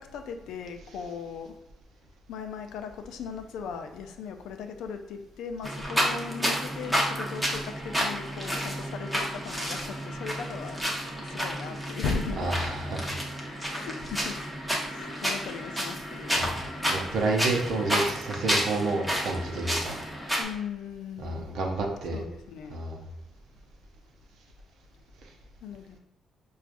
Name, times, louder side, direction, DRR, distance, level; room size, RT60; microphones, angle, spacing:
voice 1, 0.0-1.5 2.3-10.8 11.1-12.5 13.7-14.4 14.9-16.6 20.4-21.5 22.1-22.8 25.6-26.0, left 5 dB, 85° left, 6 dB, 0.3 m, -37 dB
sound 1, 5.6-20.4, equal, 5° right, 0.8 m, -31 dB
voice 2, 12.4-13.2 16.3-16.5 16.9-20.0 21.2-22.2 22.7-23.0, right 2 dB, 80° right, 1 dB, 0.6 m, -30 dB
4.6 x 2.3 x 2.5 m, 0.82 s
cardioid pair, 90°, 0 cm